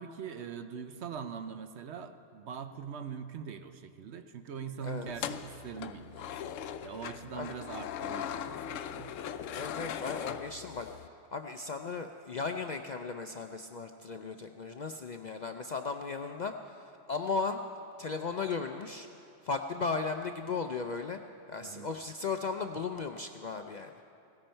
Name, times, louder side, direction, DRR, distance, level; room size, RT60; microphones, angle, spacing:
voice 1, 0.0-6.6 6.8-9.1 21.6-21.9, right 7 dB, 65° right, 9 dB, 1.0 m, -42 dB
sound 1, 5.1-11.1, left 9 dB, 90° left, 0.9 m, -39 dB
voice 2, 9.5-10.9 11.3-17.6 18.0-19.1 19.4-21.2 21.5-23.9, left 4 dB, 55° left, 5 dB, 0.5 m, -36 dB
17.0 x 16.5 x 4.4 m, 2.7 s
omnidirectional pair, 1.3 m